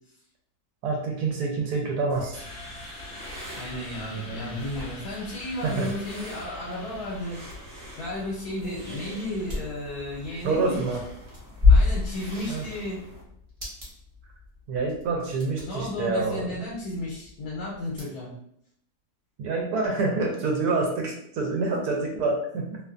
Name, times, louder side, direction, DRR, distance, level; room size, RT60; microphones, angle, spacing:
voice 1, 0.8-2.4 4.1-4.6 5.6-5.9 10.4-11.0 12.5-12.6 14.7-16.6 19.4-22.8, right 3 dB, 75° right, 1 dB, 1.1 m, -27 dB
sound 1, 2.1-13.2, equal, 50° right, 1.0 m, -45 dB
sound 2, 2.3-8.6, left 2 dB, 55° left, 0.6 m, -45 dB
voice 2, 3.5-7.4 8.0-10.8 11.7-13.0 15.6-18.4, left 1 dB, 80° left, -5 dB, 1.2 m, -33 dB
sound 3, 4.5-18.0, left 4 dB, 30° right, 0.7 m, -30 dB
2.7 x 2.2 x 2.4 m, 0.70 s
omnidirectional pair, 1.7 m